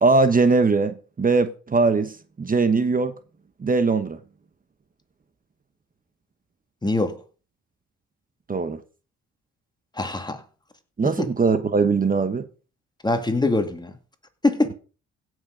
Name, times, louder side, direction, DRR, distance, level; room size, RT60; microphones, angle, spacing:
voice 1, 0.0-3.1 3.6-4.2 8.5-8.8 11.0-12.5, right 4 dB, 30° right, 1.1 m, -21 dB
voice 2, 6.8-7.2 10.0-10.4 11.0-11.3 13.0-13.9 14.4-14.7, left 2 dB, 15° left, 2.1 m, -23 dB
16.0 x 6.5 x 5.1 m
cardioid pair, 90°, 30 cm